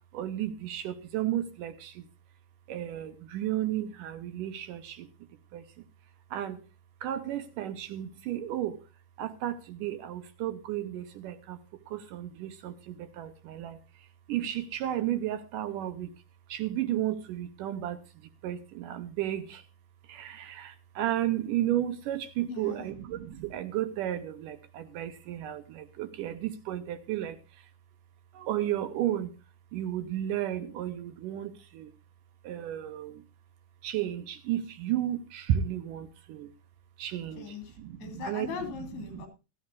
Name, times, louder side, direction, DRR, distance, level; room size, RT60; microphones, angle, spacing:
voice 1, 0.1-1.9 2.7-5.1 5.5-5.6 6.3-6.6 7.0-8.8 9.2-11.6 11.9-13.8 14.3-16.1 16.5-18.0 18.4-19.6 20.1-27.4 28.3-29.3 29.7-31.9 32.4-33.2 33.8-36.5 37.0-37.5 37.8-38.5 39.2-39.3, right 12 dB, 70° right, 11 dB, 2.1 m, -33 dB
voice 2, 22.5-22.9 37.3-39.3, left 5 dB, 80° left, 6 dB, 5.0 m, -40 dB
16.5 x 14.0 x 2.6 m, 0.29 s
omnidirectional pair, 4.7 m